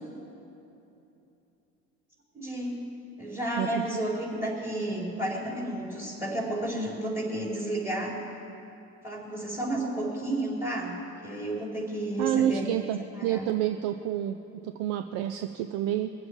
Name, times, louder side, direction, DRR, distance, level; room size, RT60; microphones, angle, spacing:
voice 1, 2.3-2.8 3.2-8.2 9.0-10.9 11.2-12.8 13.2-13.5, right 1 dB, 5° right, -2 dB, 4.1 m, -31 dB
voice 2, 3.6-3.9 12.2-16.1, right 11 dB, 45° right, 9 dB, 0.6 m, -29 dB
23.0 x 7.8 x 7.2 m, 2.9 s
figure-of-eight pair, 70°, 47 cm